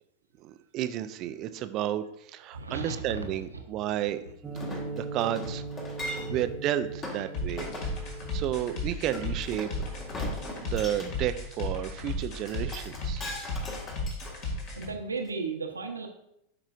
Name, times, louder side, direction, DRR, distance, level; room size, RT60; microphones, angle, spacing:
voice 1, 0.4-4.2 4.7-5.6 6.1-7.7 8.3-9.7 10.6-13.2, right 12 dB, 35° right, 12 dB, 0.4 m, -32 dB
voice 2, 2.5-3.6 5.1-5.2 6.2-6.4 7.1-7.2 14.8-16.1, right 3 dB, 75° right, 5 dB, 0.8 m, -35 dB
sound 1, 4.4-11.2, right 4 dB, 15° right, 1.0 m, -41 dB
Chink clink, 4.5-6.5 7.0-7.2 7.6-8.0 9.1-11.1 12.5-14.8 15.3-15.4, left 1 dB, 25° left, 1.3 m, -39 dB
sound 2, 7.3-14.9, left 2 dB, 40° left, 1.8 m, -34 dB
11.5 x 4.9 x 2.4 m, 0.78 s
figure-of-eight pair, 90°, 0 cm